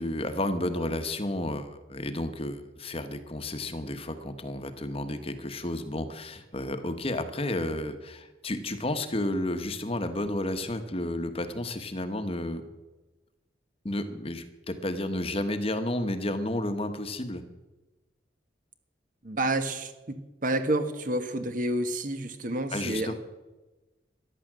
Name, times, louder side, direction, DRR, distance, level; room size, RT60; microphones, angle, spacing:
voice 1, 0.0-12.6 13.8-17.4 22.7-23.1, left 1 dB, 35° left, 9 dB, 1.2 m, -32 dB
voice 2, 19.2-23.1, right 1 dB, 50° right, 9 dB, 1.4 m, -29 dB
14.0 x 11.0 x 7.5 m, 1.1 s
head